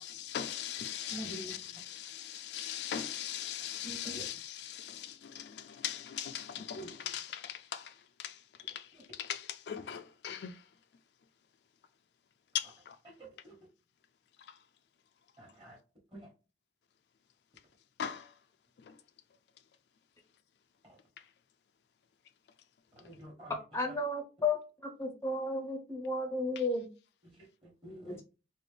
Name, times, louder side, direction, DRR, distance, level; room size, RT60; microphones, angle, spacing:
voice 1, 0.0-7.9 8.2-8.3 8.7-8.9 9.2-10.5 12.5-13.0 18.0-18.3, left 9 dB, 70° left, 0.4 m, -39 dB
voice 2, 1.1-1.6 3.8-4.3 6.7-6.9 8.9-9.0 13.2-13.6 15.4-15.8 16.1-16.3 20.9-21.0 23.0-23.5 27.2-28.2, right 1 dB, 30° right, 1.2 m, -47 dB
voice 3, 23.5-26.9 28.1-28.2, left 2 dB, 15° left, 0.5 m, -33 dB
4.1 x 2.1 x 3.2 m
head